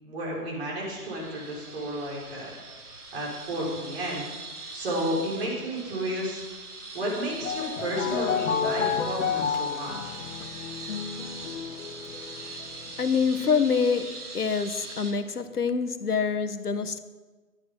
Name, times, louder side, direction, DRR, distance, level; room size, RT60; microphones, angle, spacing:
voice 1, 0.0-2.6 3.1-4.2 4.7-6.4 6.9-10.1, right 1 dB, 45° right, 5.6 m, -32 dB
sound 1, 0.8-15.1, right 3 dB, 75° right, 3.6 m, -41 dB
sound 2, 7.3-13.1, left 7 dB, 55° left, 1.8 m, -31 dB
voice 2, 13.0-17.0, left 5 dB, 75° left, 1.4 m, -26 dB
16.5 x 12.5 x 5.9 m
figure-of-eight pair, 135°, 45 cm